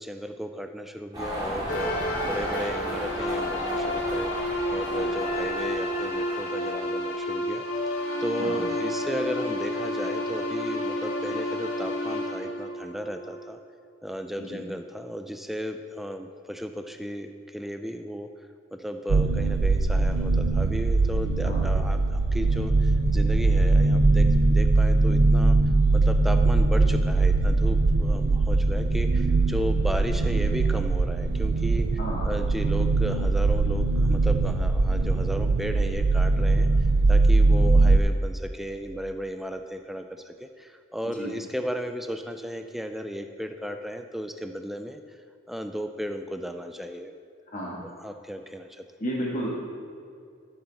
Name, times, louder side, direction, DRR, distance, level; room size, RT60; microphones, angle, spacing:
voice 1, 0.0-1.9 2.2-7.6 8.2-13.6 14.0-18.3 18.7-25.6 25.9-31.9 32.2-36.7 37.1-45.0 45.5-47.1 48.0-48.8, equal, ahead, 6 dB, 0.4 m, -34 dB
sound 1, 1.1-7.3, equal, 20° right, 2.3 m, -34 dB
sound 2, 1.7-13.5, left 1 dB, 85° left, 1.7 m, -30 dB
sound 3, 19.1-38.0, right 3 dB, 85° right, 0.5 m, -21 dB
voice 2, 47.5-47.8 49.0-49.5, equal, 40° left, -5 dB, 1.7 m, -32 dB
13.5 x 6.9 x 4.1 m, 2.4 s
head